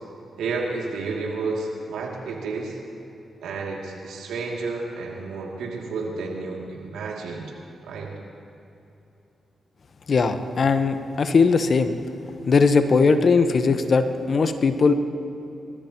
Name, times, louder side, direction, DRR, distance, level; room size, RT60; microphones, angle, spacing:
voice 1, 0.4-2.8 3.4-7.5 7.8-8.1, right 3 dB, 80° right, -2 dB, 2.6 m, -31 dB
voice 2, 10.1-12.0 12.5-14.9, left 4 dB, 55° left, 9 dB, 1.0 m, -19 dB
28.5 x 13.5 x 3.0 m, 2.9 s
hypercardioid pair, 40°, 0 cm